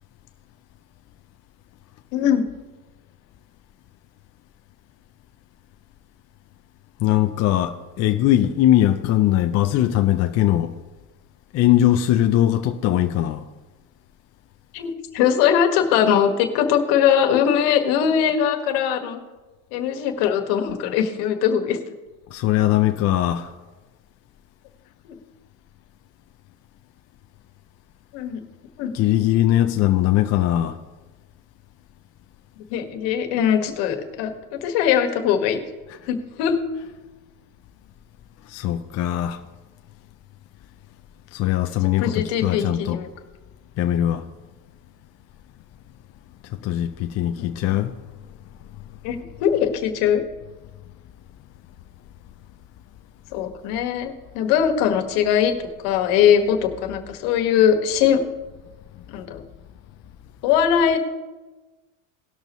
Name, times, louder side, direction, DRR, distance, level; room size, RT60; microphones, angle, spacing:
voice 1, 2.1-2.4 14.7-19.2 19.7-21.8 28.1-28.4 28.8-28.9 32.7-35.6 36.1-36.6 41.8-43.1 47.4-47.5 49.0-50.2 53.3-55.5 55.8-58.2 59.1-59.4 60.4-61.0, left 8 dB, 60° left, 1.7 m, -21 dB
voice 2, 7.0-10.7 11.5-13.4 22.3-23.5 28.9-30.8 35.9-36.1 38.5-39.4 41.3-43.0 43.8-44.2 46.4-47.9, left 12 dB, 35° left, 0.5 m, -20 dB
19.0 x 6.6 x 3.1 m
supercardioid pair, 125°, 46 cm